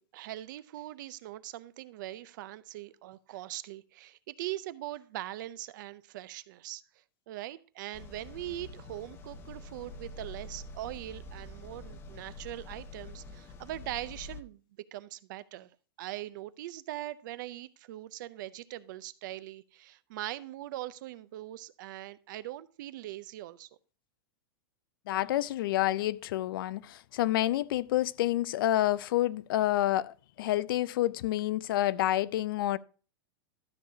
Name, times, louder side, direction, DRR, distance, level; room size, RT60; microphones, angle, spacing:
voice 1, 0.0-6.8 7.3-14.6 14.9-15.7 16.0-23.7, right 15 dB, 55° right, 0.5 m, -41 dB
sound 1, 7.9-14.4, left 2 dB, 20° left, 0.6 m, -46 dB
voice 2, 25.1-32.8, left 14 dB, 70° left, 0.4 m, -28 dB
12.5 x 6.6 x 2.7 m
supercardioid pair, 155°, 12 cm